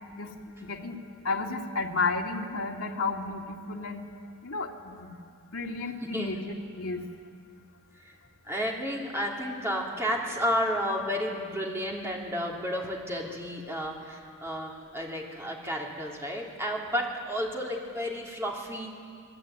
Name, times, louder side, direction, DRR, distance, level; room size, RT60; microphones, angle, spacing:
voice 1, 0.6-1.0 1.2-4.0 4.4-5.1 5.5-6.4 6.7-7.1, left 3 dB, 70° left, 0 dB, 2.4 m, -32 dB
voice 2, 6.0-6.4 8.0-8.1 8.5-18.9, equal, 10° right, -2 dB, 3.5 m, -32 dB
27.5 x 21.0 x 9.3 m, 2.2 s
head